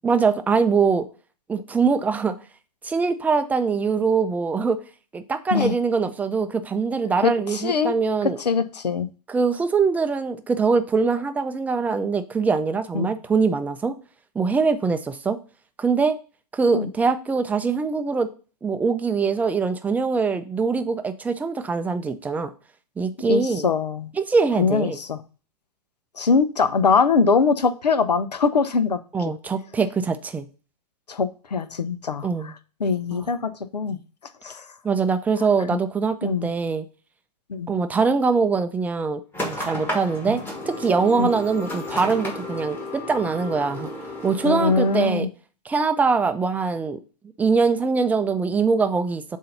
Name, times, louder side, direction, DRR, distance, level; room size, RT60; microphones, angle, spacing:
voice 1, 0.0-1.1 1.5-2.4 2.8-4.8 5.1-8.4 9.3-14.0 14.4-15.4 15.8-16.2 16.5-18.3 18.6-22.5 23.0-23.7 24.2-25.0 29.1-30.5 32.2-32.5 33.1-33.3 34.8-36.9 37.7-43.9 44.2-45.3 45.7-47.0 47.4-49.4, right 5 dB, 10° right, 0.5 m, -23 dB
voice 2, 7.2-8.0 8.4-9.1 12.9-13.1 16.7-16.9 23.3-24.1 24.6-25.2 26.2-29.0 31.1-32.5 32.8-34.0 34.4-34.6 36.2-36.5 37.5-37.7 41.2-41.3 44.4-45.3, left 5 dB, 80° left, 0.8 m, -22 dB
sound 1, 39.3-45.1, left 1 dB, 10° left, 1.4 m, -32 dB
7.5 x 2.8 x 5.7 m
figure-of-eight pair, 115°, 21 cm